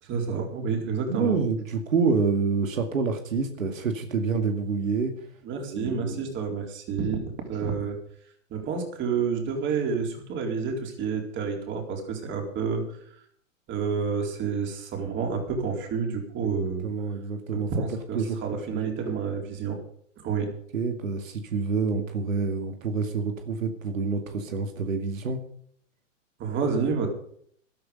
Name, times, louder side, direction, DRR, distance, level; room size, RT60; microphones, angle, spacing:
voice 1, 0.0-1.3 5.4-8.0 8.5-12.8 13.7-16.9 17.5-19.8 20.2-20.5 26.4-27.1, right 5 dB, 30° right, 3 dB, 4.1 m, -29 dB
voice 2, 1.1-5.2 5.7-6.2 16.4-16.5 16.8-17.7 18.1-18.4 18.7-18.9 20.7-25.4, right 4 dB, 85° right, 6 dB, 2.2 m, -27 dB
14.0 x 12.5 x 5.3 m, 0.62 s
hypercardioid pair, 130°, 38 cm